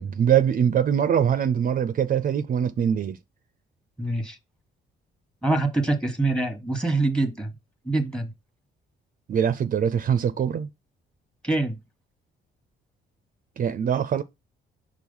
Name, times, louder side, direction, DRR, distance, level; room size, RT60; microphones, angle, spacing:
voice 1, 0.0-3.2 9.3-10.7 13.6-14.2, right 8 dB, 45° right, 0.4 m, -23 dB
voice 2, 4.0-4.4 5.4-7.5 7.8-8.3 11.4-11.8, right 2 dB, 5° left, 1.3 m, -25 dB
4.7 x 3.8 x 5.4 m
cardioid pair, 90°, 20 cm